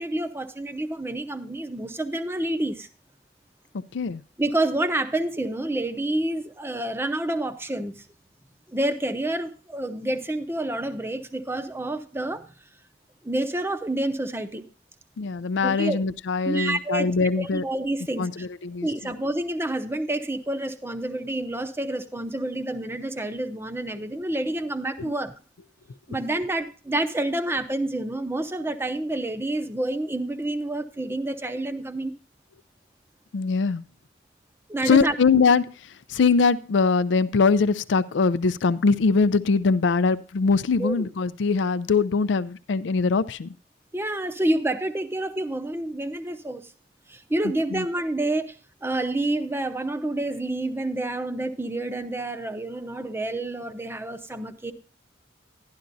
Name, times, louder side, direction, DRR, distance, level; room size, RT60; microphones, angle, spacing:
voice 1, 0.0-2.9 4.4-8.0 8.7-12.5 13.2-14.6 15.6-16.0 16.5-18.5 18.8-25.3 26.1-32.1 34.7-35.1 40.8-41.0 43.9-46.6 47.1-54.7, right 1 dB, 15° right, 8 dB, 0.7 m, -28 dB
voice 2, 3.9-4.2 15.2-17.6 18.2-19.1 25.0-25.1 33.3-33.8 34.8-43.5 47.7-47.8, left 4 dB, 75° left, 13 dB, 0.4 m, -22 dB
11.5 x 11.5 x 2.6 m, 0.36 s
head